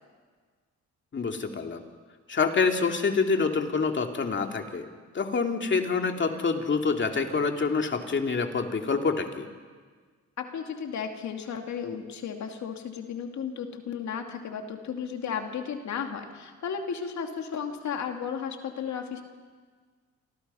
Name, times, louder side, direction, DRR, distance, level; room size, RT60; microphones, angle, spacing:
voice 1, 1.1-1.8 2.3-4.9 5.1-9.5, left 4 dB, 40° left, 4 dB, 2.6 m, -26 dB
voice 2, 10.4-19.2, left 7 dB, 65° left, 4 dB, 2.6 m, -34 dB
27.5 x 24.5 x 5.6 m, 1.5 s
cardioid pair, 90°, 30 cm